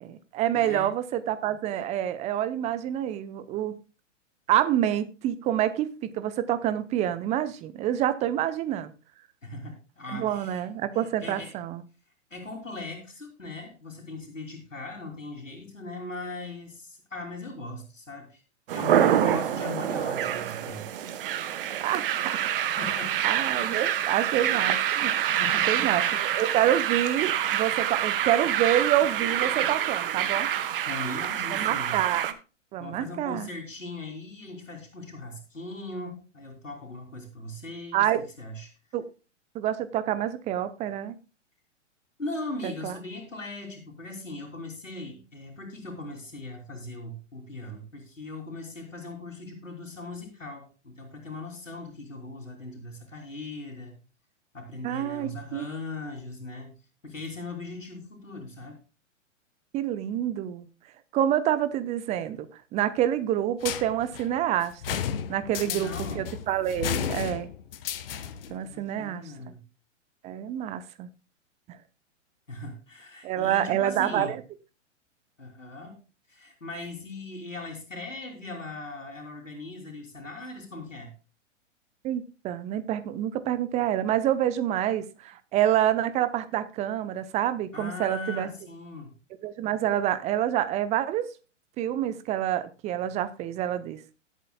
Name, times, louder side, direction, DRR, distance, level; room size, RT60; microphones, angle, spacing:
voice 1, 0.0-3.7 4.5-8.9 10.1-11.8 21.8-22.4 23.2-25.2 25.7-30.5 31.5-32.3 32.7-33.5 37.9-38.2 38.9-39.1 39.5-41.1 42.8-42.9 54.8-55.7 59.7-60.7 61.1-65.0 65.3-67.5 68.5-69.2 70.2-71.1 73.2-74.4 82.0-88.5 89.4-91.3 91.8-94.0, right 11 dB, 20° right, 14 dB, 0.7 m, -27 dB
voice 2, 0.5-0.9 9.4-10.6 10.9-11.5 12.3-18.4 18.7-20.8 22.6-23.2 23.5-23.8 25.3-26.1 30.8-32.0 32.8-38.7 42.2-54.0 54.5-58.8 65.6-66.3 68.6-69.6 72.5-74.4 75.4-76.0 76.3-81.1 87.7-89.1, left 2 dB, 85° left, 0 dB, 3.1 m, -39 dB
sound 1, 18.7-32.3, right 10 dB, 45° right, 1.1 m, -26 dB
sound 2, 63.6-68.6, left 9 dB, 50° left, 1.1 m, -33 dB
18.5 x 8.2 x 2.2 m, 0.32 s
figure-of-eight pair, 110°, 37 cm